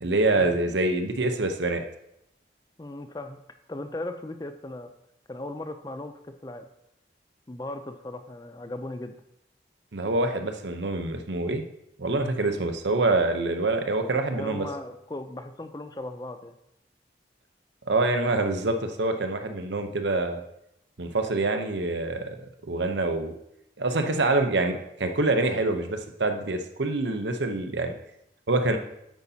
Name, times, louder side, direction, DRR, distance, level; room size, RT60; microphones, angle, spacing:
voice 1, 0.0-1.8 9.9-11.6 12.0-14.7 17.9-20.4 21.0-23.3 23.8-27.9 28.5-28.8, right 2 dB, 85° right, 6 dB, 0.8 m, -26 dB
voice 2, 2.8-3.4 3.7-4.9 5.3-6.7 7.5-9.1 14.3-16.6, left 1 dB, 20° left, 8 dB, 0.4 m, -37 dB
9.4 x 8.4 x 2.8 m, 0.81 s
head